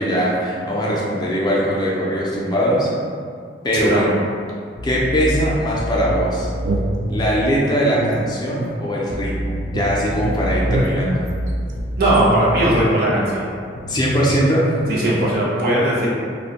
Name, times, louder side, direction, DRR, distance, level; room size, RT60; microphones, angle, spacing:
voice 1, 0.0-2.9 3.6-4.2 4.8-6.5 7.1-11.2 13.9-14.7, equal, 25° left, -5 dB, 0.3 m, -20 dB
voice 2, 3.8-4.1 12.0-13.5 14.9-16.1, right 1 dB, 55° right, -6 dB, 0.6 m, -18 dB
sound 1, 4.8-7.4 9.1-12.7 13.8-15.4, equal, 85° left, 0.4 m, -27 dB
sound 2, 6.1-7.5 8.0-9.4 9.7-12.3, right 1 dB, 90° right, 0.3 m, -27 dB
2.6 x 2.1 x 2.8 m, 2.2 s
head